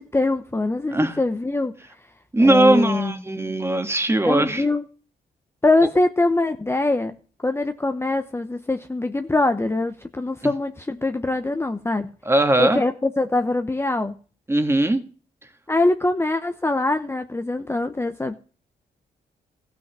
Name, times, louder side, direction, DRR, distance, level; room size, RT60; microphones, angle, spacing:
voice 1, 0.0-1.7 2.4-3.1 4.2-4.8 5.6-7.1 7.4-12.1 12.6-14.1 15.7-18.4, left 2 dB, 15° left, 0.9 m, -23 dB
voice 2, 2.3-4.6 12.3-12.8 14.5-15.0, right 1 dB, 15° right, 1.8 m, -19 dB
15.0 x 6.1 x 7.6 m
cardioid pair, 90°, 17 cm